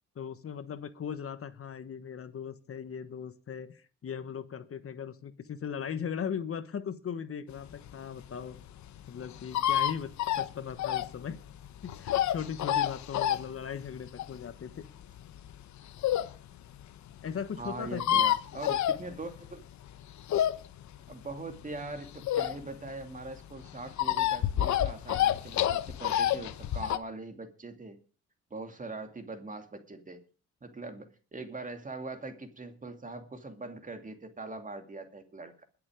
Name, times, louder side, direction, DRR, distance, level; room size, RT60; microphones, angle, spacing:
voice 1, 0.1-8.6 9.1-11.4 11.8-14.8 17.2-18.4 18.7-18.8, left 7 dB, 50° left, 11 dB, 1.2 m, -38 dB
sound 1, 7.7-16.4 16.8-16.9 17.1-17.2 17.4-17.5 17.7-19.5 19.9-22.9 23.2-27.0, left 11 dB, 70° left, 1.0 m, -29 dB
voice 2, 17.6-19.6 21.1-28.0 28.5-30.2 30.6-35.6, right 3 dB, 25° right, 6 dB, 2.5 m, -42 dB
21.0 x 7.0 x 5.0 m, 0.38 s
cardioid pair, 90°, 30 cm